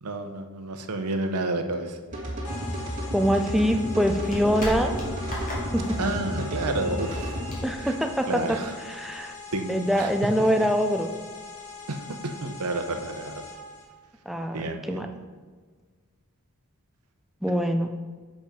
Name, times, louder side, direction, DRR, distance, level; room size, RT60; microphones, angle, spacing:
voice 1, 0.0-2.0 6.0-7.3 7.8-7.9 8.3-8.7 9.5-10.1 10.4-10.5 11.9-13.4 14.5-15.0, right 2 dB, 90° right, 6 dB, 0.8 m, -30 dB
sound 1, 2.1-7.5, equal, 35° right, 2.0 m, -32 dB
sound 2, 2.4-13.9, left 4 dB, 80° left, 2.1 m, -42 dB
sound 3, 2.8-8.7, equal, 40° left, 2.1 m, -39 dB
voice 2, 3.1-5.0 5.7-6.0 7.6-8.6 8.8-9.3 9.7-11.1 14.3-15.1 17.4-17.9, equal, ahead, 5 dB, 0.4 m, -24 dB
7.1 x 5.3 x 5.1 m, 1.5 s
head